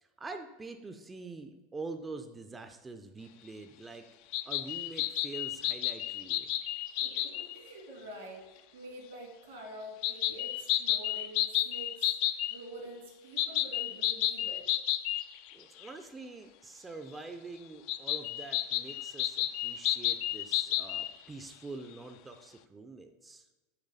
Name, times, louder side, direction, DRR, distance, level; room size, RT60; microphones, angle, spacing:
voice 1, 0.0-4.1 4.4-6.5 15.5-23.5, right 3 dB, 15° right, 7 dB, 0.4 m, -45 dB
sound 1, 4.3-7.6 10.0-12.6 13.4-15.5 15.8-15.9 17.9-21.1, left 14 dB, 60° left, 0.3 m, -31 dB
voice 2, 7.0-12.1 12.5-14.7, right 1 dB, 80° right, 0 dB, 1.9 m, -47 dB
7.2 x 3.2 x 4.0 m, 1.1 s
hypercardioid pair, 90°, 0 cm